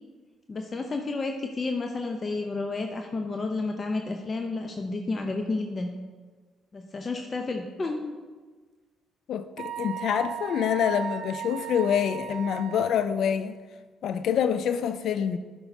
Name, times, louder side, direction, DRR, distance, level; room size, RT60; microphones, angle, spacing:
voice 1, 0.5-5.9 6.7-8.2, left 3 dB, 40° left, 4 dB, 0.7 m, -31 dB
voice 2, 9.3-13.6 14.0-15.4, left 8 dB, 65° left, 11 dB, 0.3 m, -26 dB
Wind instrument woodwind instrument, 9.6-13.1, right 8 dB, 65° right, 0.4 m, -36 dB
11.5 x 5.6 x 2.8 m, 1.4 s
hypercardioid pair, 45°, 0 cm